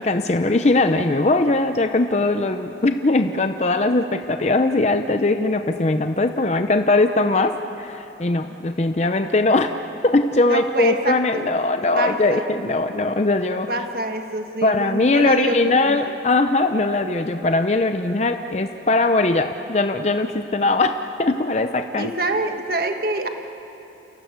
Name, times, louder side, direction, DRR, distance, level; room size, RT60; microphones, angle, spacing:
voice 1, 0.0-9.7 10.0-13.7 14.6-20.9 21.2-22.1, left 2 dB, 35° left, 7 dB, 0.6 m, -20 dB
voice 2, 10.4-11.5 11.9-12.4 13.7-16.1 22.0-23.3, right 1 dB, 55° right, 5 dB, 1.6 m, -26 dB
28.5 x 16.5 x 8.2 m, 2.9 s
head